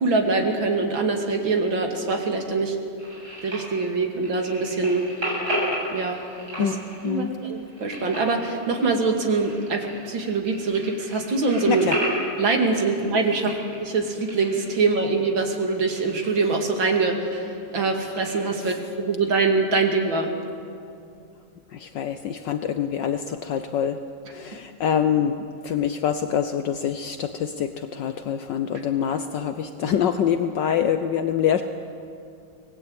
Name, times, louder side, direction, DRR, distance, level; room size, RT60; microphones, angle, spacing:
voice 1, 0.0-2.8 3.4-5.0 5.9-6.2 6.6-6.7 7.0-11.9 12.4-20.3, right 3 dB, 70° right, 3 dB, 3.2 m, -24 dB
sound 1, 3.0-18.4, right 1 dB, 50° right, 8.7 m, -35 dB
voice 2, 6.6-7.3 11.7-12.0 18.6-18.8 21.7-24.0 24.3-31.6, left 8 dB, 65° left, 9 dB, 1.4 m, -25 dB
25.5 x 19.5 x 8.8 m, 2.5 s
omnidirectional pair, 2.2 m